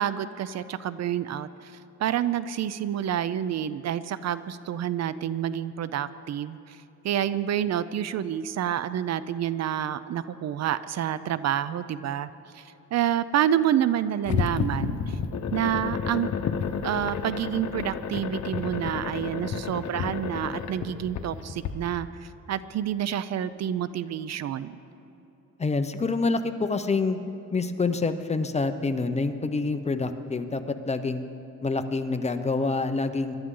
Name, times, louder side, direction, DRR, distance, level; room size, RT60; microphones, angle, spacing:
voice 1, 0.0-1.7 2.0-6.8 7.0-12.6 12.9-15.2 15.5-16.6 16.8-24.7, right 10 dB, 60° right, 15 dB, 0.5 m, -28 dB
sound 1, 14.3-21.7, left 6 dB, 70° left, 1.0 m, -31 dB
voice 2, 25.6-27.2 27.5-31.2 31.6-33.4, left 3 dB, 20° left, 8 dB, 0.7 m, -27 dB
22.0 x 12.5 x 3.8 m, 3.0 s
cardioid pair, 115°, 30 cm